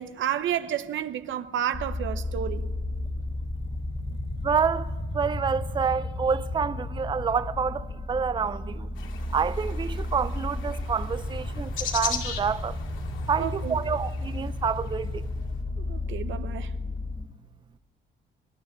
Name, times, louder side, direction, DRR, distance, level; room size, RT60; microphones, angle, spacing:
voice 1, 0.0-2.7 13.4-13.8 15.8-16.7, right 10 dB, 75° right, 0.9 m, -31 dB
sound 1, 1.7-17.3, left 2 dB, 25° left, 2.5 m, -33 dB
voice 2, 4.4-8.9 9.3-12.8 13.3-15.2, right 6 dB, 25° right, 0.5 m, -28 dB
sound 2, 9.0-15.2, left 7 dB, 80° left, 2.2 m, -38 dB
24.0 x 11.5 x 9.7 m
cardioid pair, 90°, 20 cm